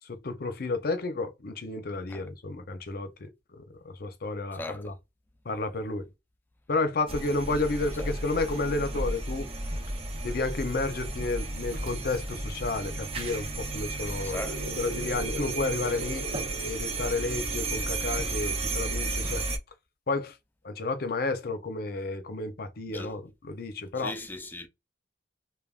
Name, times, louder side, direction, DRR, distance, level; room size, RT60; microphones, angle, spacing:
voice 1, 0.1-3.3 3.6-4.9 5.4-6.1 6.7-9.5 10.2-16.3 16.6-19.4 20.1-20.4 20.6-24.1, left 3 dB, 55° left, 0.6 m, -31 dB
voice 2, 4.5-4.9 8.0-8.1 14.2-14.7 22.9-23.2 24.0-24.7, left 2 dB, 10° left, 0.4 m, -39 dB
sound 1, 7.1-19.6, right 2 dB, 30° right, 0.6 m, -33 dB
sound 2, 14.4-19.6, left 1 dB, 75° right, 0.8 m, -42 dB
3.4 x 2.2 x 2.3 m
head